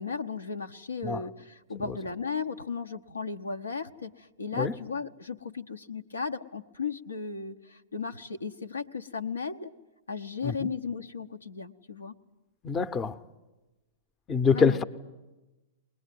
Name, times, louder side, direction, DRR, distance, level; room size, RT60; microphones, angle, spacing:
voice 1, 0.0-9.7 10.1-12.2 14.5-14.8, left 5 dB, 85° left, 0.8 m, -35 dB
voice 2, 12.6-13.2 14.3-14.8, left 5 dB, 25° left, 0.7 m, -25 dB
21.5 x 20.0 x 9.3 m
figure-of-eight pair, 105°, 0 cm